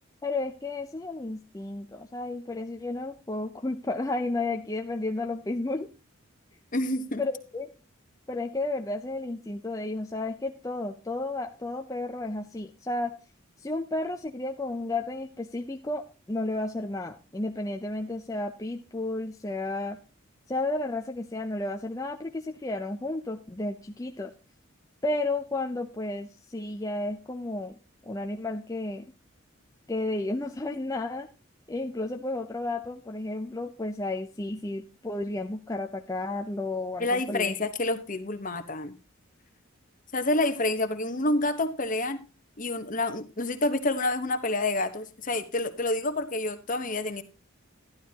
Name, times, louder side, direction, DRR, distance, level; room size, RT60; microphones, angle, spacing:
voice 1, 0.2-5.9 7.2-7.7 8.3-13.1 13.6-20.0 20.5-24.3 25.0-27.8 28.1-29.1 29.9-31.3 31.7-37.5, left 2 dB, 15° left, 3 dB, 0.6 m, -32 dB
voice 2, 6.7-7.2 37.0-38.9 40.1-42.2 42.6-47.2, left 2 dB, 40° left, 10 dB, 1.1 m, -28 dB
12.0 x 12.0 x 2.9 m, 0.31 s
head